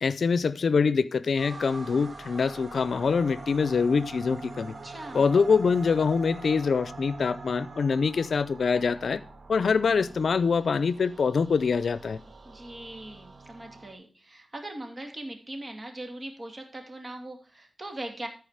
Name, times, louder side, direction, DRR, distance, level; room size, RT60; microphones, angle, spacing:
voice 1, 0.0-4.7 5.1-9.2 9.5-12.2, left 5 dB, 85° left, 16 dB, 0.5 m, -24 dB
sound 1, 1.4-13.9, right 3 dB, 60° right, 1.8 m, -44 dB
voice 2, 4.8-5.3 12.4-18.3, right 1 dB, 40° right, 4 dB, 2.6 m, -40 dB
13.5 x 4.8 x 4.9 m, 0.38 s
cardioid pair, 60°, 0 cm